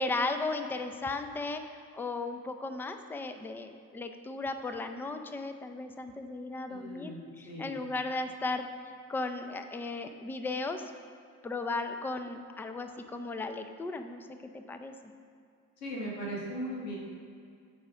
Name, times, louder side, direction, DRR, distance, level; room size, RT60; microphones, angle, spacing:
voice 1, 0.0-1.6 1.9-7.1 7.4-8.7 9.1-10.8 11.4-14.3 14.5-14.9, left 3 dB, 5° left, 7 dB, 0.5 m, -35 dB
voice 2, 6.7-7.8 15.8-17.0, equal, 80° left, -3 dB, 1.5 m, -38 dB
8.8 x 5.1 x 5.9 m, 2.3 s
figure-of-eight pair, 55°, 48 cm